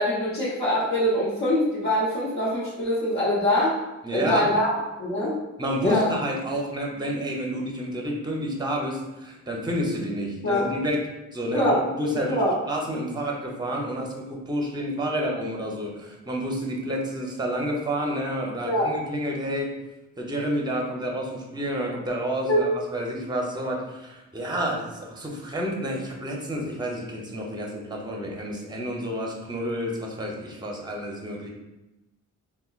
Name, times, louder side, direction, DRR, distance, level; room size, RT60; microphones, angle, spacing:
voice 1, 0.0-3.7 4.1-5.4 5.8-6.1 10.4-10.7 11.5-11.8 12.1-12.5 18.6-18.9 22.5-22.6, left 1 dB, 60° left, -9 dB, 1.1 m, -24 dB
voice 2, 4.0-4.5 5.6-11.0 11.3-19.7 20.2-31.5, equal, 15° right, -1 dB, 0.6 m, -29 dB
4.2 x 2.2 x 2.4 m, 1.0 s
cardioid pair, 105°, 32 cm